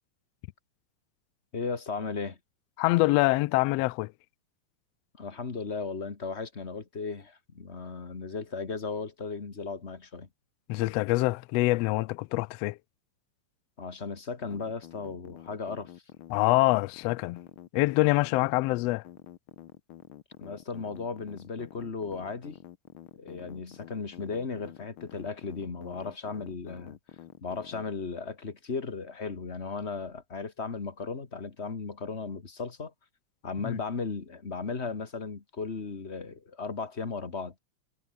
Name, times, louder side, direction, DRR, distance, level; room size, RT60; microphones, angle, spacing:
voice 1, 1.5-2.4 5.2-10.3 13.8-15.9 20.4-22.6 23.2-27.0 27.4-32.9 33.4-37.6, left 4 dB, 25° left, 1.6 m, -36 dB
voice 2, 2.8-4.1 10.7-12.8 16.3-17.4 17.7-19.0 33.6-33.8, left 21 dB, 90° left, 1.4 m, -25 dB
sound 1, 14.4-27.8, left 12 dB, 65° left, 1.3 m, -48 dB
omnidirectional pair, 3.4 m